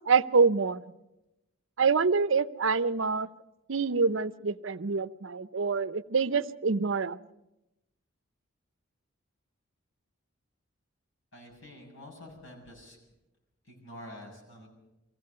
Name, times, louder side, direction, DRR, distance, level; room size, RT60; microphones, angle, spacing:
voice 1, 0.1-0.8 1.8-3.3 3.7-7.2, right 5 dB, 70° right, 14 dB, 0.6 m, -26 dB
voice 2, 11.3-13.0 13.6-14.7, left 1 dB, 75° left, -1 dB, 7.3 m, -47 dB
24.0 x 16.5 x 6.7 m, 0.94 s
head